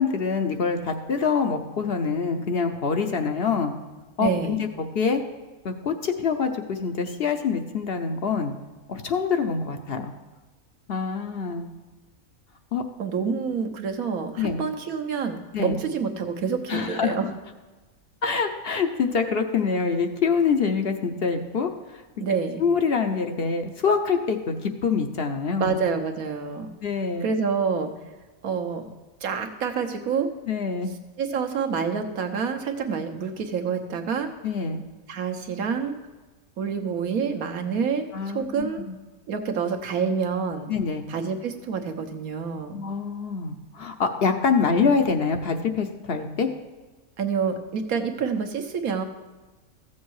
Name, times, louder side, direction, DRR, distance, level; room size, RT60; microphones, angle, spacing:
voice 1, 0.0-3.7 4.2-5.2 5.6-8.5 8.9-10.1 10.9-11.7 12.7-12.8 14.4-14.6 15.5-15.8 16.7-17.1 18.2-21.7 22.6-25.8 26.8-27.3 30.5-30.9 34.4-34.8 38.1-39.0 40.7-41.1 42.7-46.5, left 5 dB, 55° left, 6 dB, 0.8 m, -25 dB
voice 2, 4.2-4.6 13.0-17.3 22.2-22.6 25.6-26.7 27.2-27.9 28.4-28.8 29.2-30.3 31.2-34.3 35.1-35.9 36.6-38.8 39.3-40.7 41.1-42.8 47.2-49.0, right 6 dB, 75° right, 5 dB, 1.4 m, -27 dB
14.5 x 7.3 x 4.7 m, 1.2 s
omnidirectional pair, 1.5 m